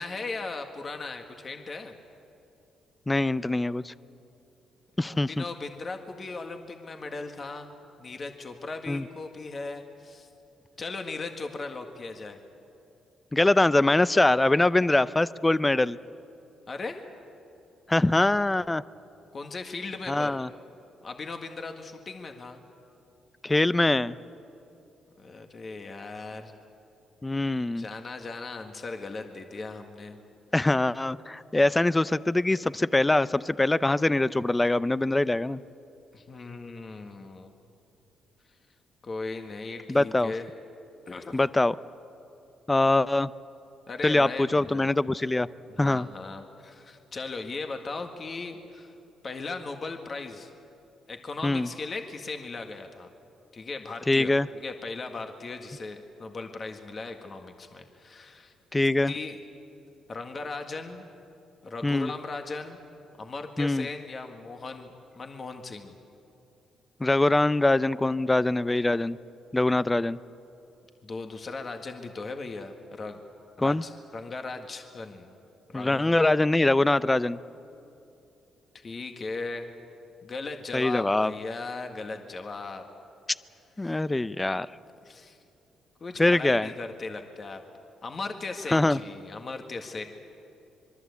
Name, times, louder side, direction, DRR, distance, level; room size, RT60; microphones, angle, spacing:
voice 1, 0.0-1.9 5.0-7.7 8.0-10.3 10.8-12.4 16.7-17.0 19.3-20.4 21.0-22.6 25.2-26.5 27.8-30.2 36.1-37.5 39.0-40.5 41.1-41.4 43.9-44.9 45.7-48.9 49.2-50.5 51.1-53.1 53.5-58.5 59.1-59.4 60.1-61.0 61.6-62.8 63.2-64.9 65.1-65.9 71.0-73.2 73.6-75.4 75.7-76.2 78.7-79.7 80.2-82.8 83.8-84.0 85.0-85.4 86.0-87.6 88.0-90.0, left 3 dB, 40° left, 5 dB, 1.8 m, -37 dB
voice 2, 3.1-3.9 5.0-5.4 8.9-9.0 13.3-16.0 17.9-18.8 20.1-20.5 23.4-24.2 27.2-27.8 30.5-35.6 39.9-40.3 41.3-41.7 42.7-43.3 44.0-45.5 45.8-46.1 51.4-51.7 54.1-54.5 58.7-59.1 61.8-62.1 63.6-63.9 67.0-69.2 69.5-70.2 73.6-73.8 75.7-77.4 80.7-81.3 83.8-84.7 86.2-86.7 88.7-89.0, left 2 dB, 15° left, 17 dB, 0.5 m, -23 dB
25.5 x 23.0 x 8.3 m, 2.8 s
cardioid pair, 90°, 0 cm